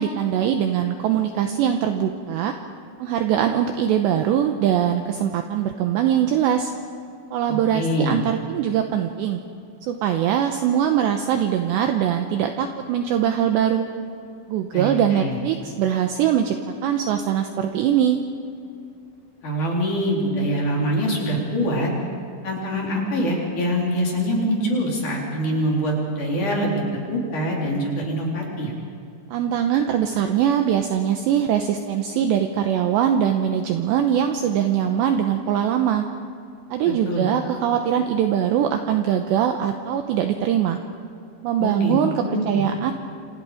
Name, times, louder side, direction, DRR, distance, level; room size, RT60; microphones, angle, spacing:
voice 1, 0.0-2.5 3.0-6.7 7.3-9.4 9.9-13.9 14.5-18.2 29.3-36.0 36.7-40.8 41.4-42.9, right 9 dB, 80° right, 5 dB, 2.6 m, -22 dB
voice 2, 7.7-8.2 14.7-15.4 19.4-21.9 22.4-28.7 37.0-37.2 41.6-42.0 42.2-42.6, equal, 40° left, -2 dB, 4.8 m, -24 dB
27.5 x 27.5 x 5.0 m, 2.5 s
omnidirectional pair, 6.0 m